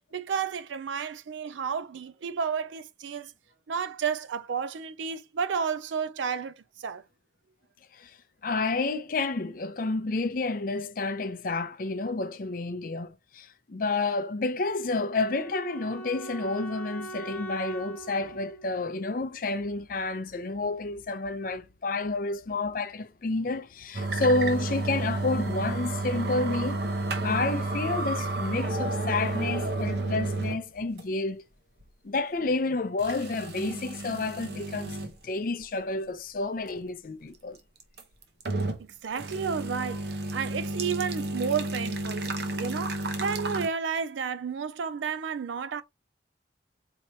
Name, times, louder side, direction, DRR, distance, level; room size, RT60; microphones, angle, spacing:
voice 1, 0.1-3.3 3.7-7.0 38.8-45.8, right 6 dB, 85° right, 0.4 m, -32 dB
voice 2, 8.4-26.8 27.2-31.4 32.0-35.0 35.2-37.6, left 3 dB, 50° left, 0.5 m, -30 dB
Wind instrument woodwind instrument, 14.6-19.6, right 2 dB, 10° left, 0.7 m, -42 dB
sound 1, 23.9-30.6 31.0-31.1 31.8-31.9 33.0-35.1 35.6-35.7 37.8-38.9 39.2-43.7, right 2 dB, 60° right, 0.8 m, -31 dB
4.6 x 2.9 x 2.7 m
head